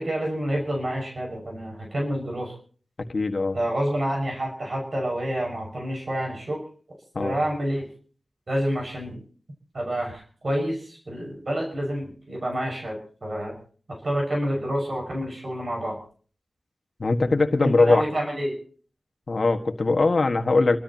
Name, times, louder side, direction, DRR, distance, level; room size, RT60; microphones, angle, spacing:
voice 1, 0.0-2.5 3.5-6.6 7.2-7.9 8.5-9.2 9.7-13.5 13.9-16.0 17.6-18.6, equal, 60° right, 0 dB, 5.9 m, -28 dB
voice 2, 3.1-3.6 7.1-7.4 17.0-18.0 19.3-20.8, left 3 dB, 60° left, 5 dB, 1.6 m, -21 dB
30.0 x 13.0 x 3.0 m, 0.43 s
cardioid pair, 55°, 0 cm